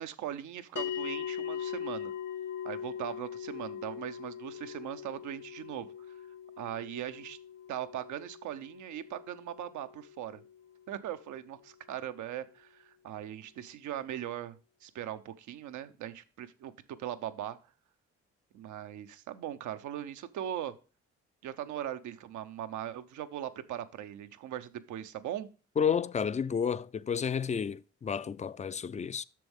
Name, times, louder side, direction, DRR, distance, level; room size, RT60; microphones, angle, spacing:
voice 1, 0.0-2.1 2.6-6.2 6.6-7.4 7.7-10.4 10.9-17.6 18.5-20.7 21.4-25.5, right 11 dB, 85° right, 0.7 m, -40 dB
sound 1, 0.8-11.3, left 9 dB, 85° left, 1.7 m, -41 dB
voice 2, 25.8-29.2, left 7 dB, 25° left, 0.3 m, -31 dB
7.6 x 6.2 x 3.5 m
cardioid pair, 70°, 29 cm